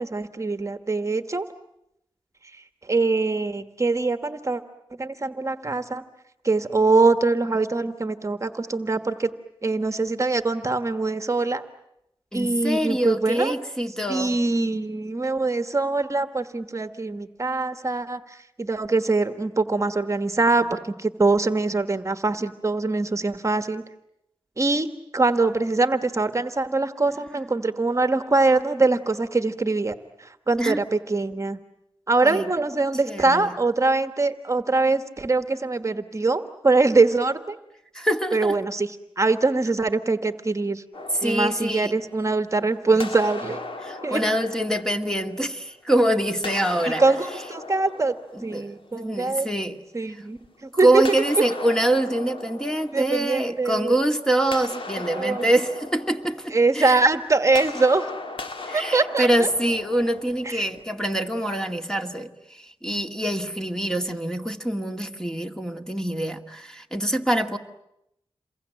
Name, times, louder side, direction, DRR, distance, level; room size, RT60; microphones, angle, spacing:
voice 1, 0.0-1.5 2.5-4.6 5.0-6.0 6.4-9.3 9.6-11.6 12.3-13.5 14.1-23.8 24.6-24.9 25.1-31.6 32.1-37.6 38.3-40.8 41.2-43.6 44.0-44.2 46.8-48.1 48.4-49.5 49.9-51.0 52.9-54.0 55.1-55.5 56.5-58.0 58.7-59.5 60.4-60.6, right 3 dB, 35° right, 1.4 m, -23 dB
voice 2, 12.3-14.4 30.6-30.8 32.2-32.4 33.1-33.5 37.9-38.6 41.2-41.9 42.9-43.0 43.8-47.0 48.3-49.8 50.8-57.0 58.7-67.6, right 1 dB, 5° left, 2.1 m, -25 dB
sound 1, 40.9-42.6 43.0-45.8 46.3-49.2 51.0-53.8 54.1-60.8, left 3 dB, 70° left, 2.5 m, -38 dB
28.0 x 23.0 x 9.1 m
wide cardioid pair, 75°, 9 cm